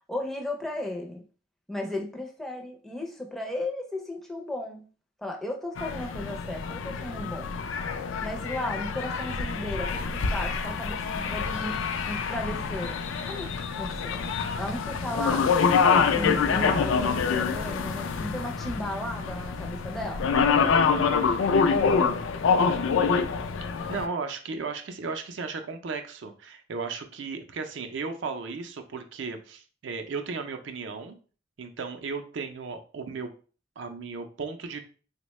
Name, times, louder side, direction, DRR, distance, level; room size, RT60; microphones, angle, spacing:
voice 1, 0.1-1.2 1.7-4.8 5.2-7.5 8.2-11.8 12.1-13.0 13.3-13.5 13.8-15.5 15.9-20.3 21.6-21.8, left 1 dB, ahead, 0 dB, 0.4 m, -35 dB
sound 1, 5.8-24.1, left 5 dB, 75° left, 0.3 m, -26 dB
voice 2, 20.6-21.0 22.0-22.2 23.9-31.2 31.6-33.3 33.8-34.8, right 4 dB, 65° right, 7 dB, 0.4 m, -35 dB
3.4 x 2.1 x 3.0 m, 0.38 s
head